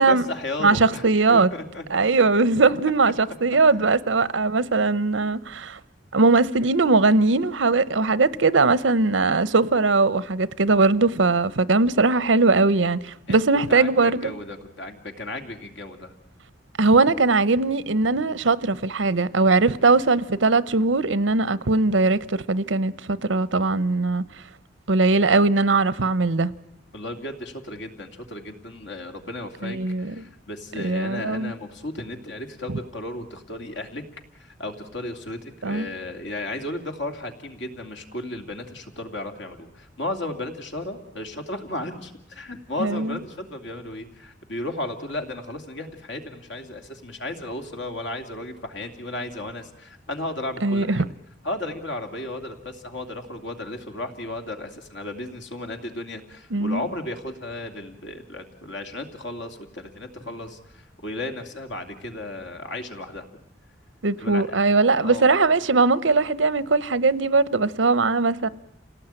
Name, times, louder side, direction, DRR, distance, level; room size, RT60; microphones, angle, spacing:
voice 1, 0.0-2.0 3.7-3.9 13.3-13.4 13.7-16.1 26.9-34.0 34.3-51.0 51.4-63.3 64.2-64.6 65.0-65.3, left 1 dB, 70° left, 2.7 m, -34 dB
voice 2, 0.6-1.5 1.9-5.8 6.1-14.3 16.8-24.2 24.9-26.5 29.6-30.1 30.7-31.5 35.6-35.9 42.8-43.2 50.6-51.1 56.5-56.8 64.0-68.5, right 3 dB, 85° right, 0.9 m, -20 dB
28.5 x 18.0 x 9.0 m
head